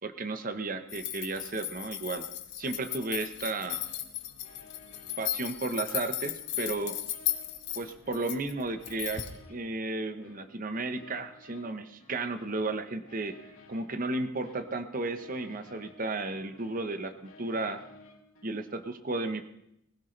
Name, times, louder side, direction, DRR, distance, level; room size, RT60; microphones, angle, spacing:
voice 1, 0.0-2.2 2.6-3.8 5.2-7.0 7.8-13.4 13.7-17.8 18.4-19.4, right 2 dB, 40° right, 9 dB, 1.0 m, -34 dB
sound 1, 0.9-9.4, left 12 dB, 55° left, 1.3 m, -36 dB
sound 2, 2.6-18.8, left 2 dB, 80° left, 3.1 m, -55 dB
20.0 x 16.0 x 3.3 m, 0.80 s
head